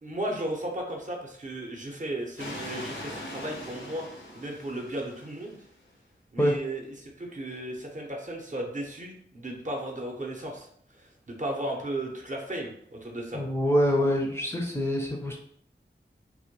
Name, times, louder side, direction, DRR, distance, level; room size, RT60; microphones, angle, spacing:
voice 1, 0.0-4.0 4.3-5.6 6.3-10.7 11.0-13.4, right 1 dB, 40° right, 0 dB, 0.6 m, -35 dB
sound 1, 2.4-5.7, left 1 dB, 75° left, 0.5 m, -41 dB
voice 2, 13.3-15.4, equal, 15° left, 0 dB, 0.4 m, -25 dB
2.1 x 2.1 x 2.8 m, 0.65 s
wide cardioid pair, 50°, 19 cm